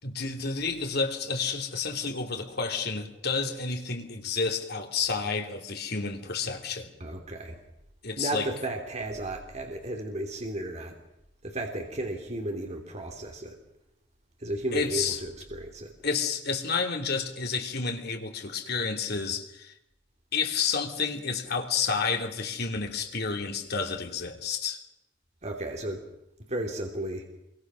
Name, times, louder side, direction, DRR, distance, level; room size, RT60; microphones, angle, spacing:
voice 1, 0.0-6.9 8.0-8.5 14.7-15.2 16.0-19.7 20.3-24.8, left 5 dB, 60° left, 3.0 m, -30 dB
voice 2, 7.0-7.6 8.2-11.0 11.4-13.6 14.4-15.9 25.4-26.0 26.5-27.3, right 1 dB, 40° right, 3.0 m, -34 dB
27.0 x 23.5 x 6.4 m
head